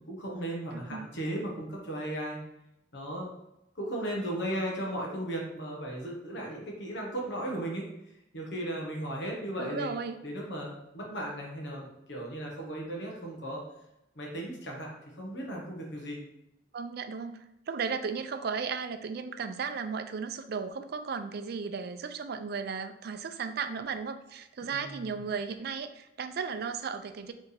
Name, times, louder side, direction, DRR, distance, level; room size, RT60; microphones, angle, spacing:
voice 1, 0.1-2.4 2.9-3.3 3.7-7.8 8.3-9.9 10.2-13.6 14.1-16.2 24.7-25.1, right 1 dB, 65° left, -2 dB, 1.2 m, -36 dB
voice 2, 0.7-1.1 9.6-10.2 16.7-17.4 17.7-27.3, right 5 dB, 55° right, 9 dB, 0.4 m, -35 dB
4.7 x 3.4 x 3.3 m, 0.86 s
head